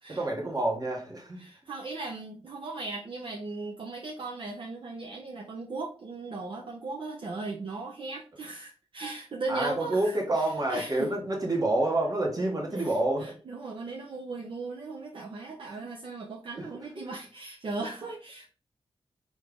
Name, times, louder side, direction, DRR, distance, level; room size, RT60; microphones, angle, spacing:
voice 1, 0.1-1.4 9.5-13.4 15.6-15.8 16.5-16.6 17.0-17.1, right 2 dB, 40° right, 0 dB, 1.4 m, -28 dB
voice 2, 1.4-11.1 12.7-18.5, right 3 dB, 60° right, 0 dB, 0.7 m, -38 dB
3.9 x 3.2 x 3.4 m, 0.39 s
cardioid pair, 70°, 10 cm